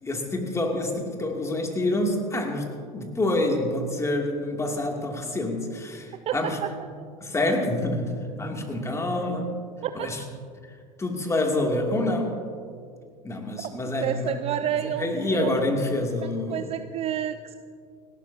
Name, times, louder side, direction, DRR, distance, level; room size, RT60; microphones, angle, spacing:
voice 1, 0.0-6.6 7.2-9.5 9.9-10.2 11.0-12.4 13.2-14.3 14.7-16.7, left 1 dB, 15° left, 1 dB, 2.5 m, -27 dB
voice 2, 6.3-6.7 9.8-10.1 14.0-15.6 16.2-17.6, right 10 dB, 30° right, 10 dB, 0.5 m, -30 dB
29.0 x 12.0 x 2.8 m, 2.2 s
figure-of-eight pair, 75°, 20 cm